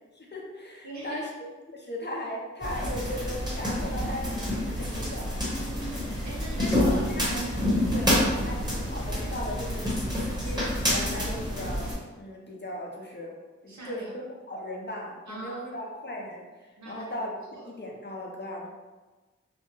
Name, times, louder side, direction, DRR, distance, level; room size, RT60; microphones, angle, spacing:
voice 1, 0.1-5.3 6.6-7.4 7.9-11.9 12.1-13.4 13.6-18.7, left 1 dB, 35° left, -1 dB, 0.7 m, -37 dB
voice 2, 0.8-1.2 5.5-7.6 13.7-14.1 15.3-15.7 16.8-17.0 17.5-17.6, right 3 dB, 70° right, -4 dB, 0.9 m, -40 dB
sound 1, 2.6-12.0, left 1 dB, 15° right, 1.2 m, -28 dB
3.2 x 2.1 x 3.1 m, 1.3 s
cardioid pair, 40°, 29 cm